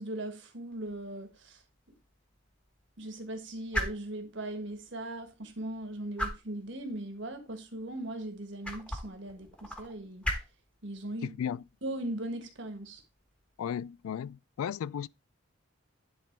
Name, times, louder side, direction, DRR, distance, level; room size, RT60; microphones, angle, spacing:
voice 1, 0.0-1.6 3.0-10.2 10.8-11.3 11.8-13.0, right 1 dB, 60° right, 1.5 m, -39 dB
sound 1, 0.7-14.3, equal, 5° left, 1.2 m, -42 dB
voice 2, 11.2-11.6 13.6-15.1, left 8 dB, 90° left, 0.3 m, -35 dB
10.5 x 3.8 x 4.5 m
head